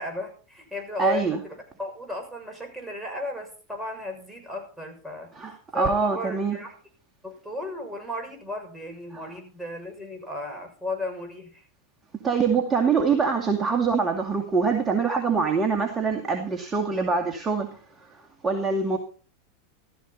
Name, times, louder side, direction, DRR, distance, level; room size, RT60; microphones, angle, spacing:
voice 1, 0.0-5.3 5.7-6.8 7.2-11.6, left 2 dB, 5° right, 2 dB, 6.5 m, -34 dB
voice 2, 1.0-1.4 5.4-6.6 12.2-17.7 18.4-19.0, right 5 dB, 20° right, 3 dB, 2.3 m, -24 dB
15.0 x 14.0 x 4.2 m, 0.39 s
hypercardioid pair, 90°, 0 cm